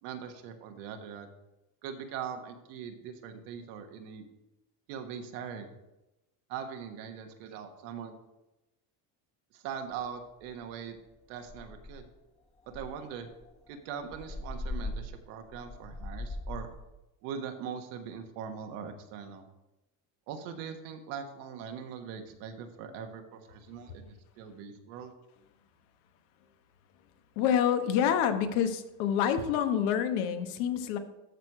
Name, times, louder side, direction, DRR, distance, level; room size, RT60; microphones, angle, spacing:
voice 1, 0.0-1.3 1.8-4.2 4.9-5.7 6.5-8.2 9.5-11.0 11.3-12.1 12.7-13.3 13.7-16.7 17.2-19.5 20.3-25.1, right 7 dB, 85° right, 5 dB, 1.4 m, -41 dB
sound 1, 10.0-10.1 10.5-10.7 11.1-11.2 11.5-12.1 12.7-16.9, left 2 dB, 15° left, 1.0 m, -40 dB
voice 2, 27.4-31.0, left 8 dB, 80° left, 7 dB, 1.2 m, -27 dB
13.5 x 4.7 x 4.9 m, 0.97 s
cardioid pair, 145°, 45 cm